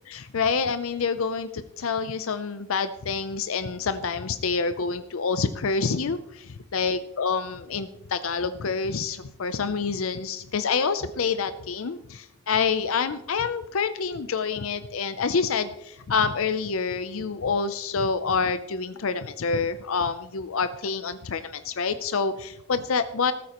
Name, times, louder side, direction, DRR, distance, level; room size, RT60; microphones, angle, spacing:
voice 1, 0.1-23.3, left 5 dB, 75° left, 11 dB, 0.5 m, -27 dB
14.0 x 13.5 x 3.0 m, 0.84 s
head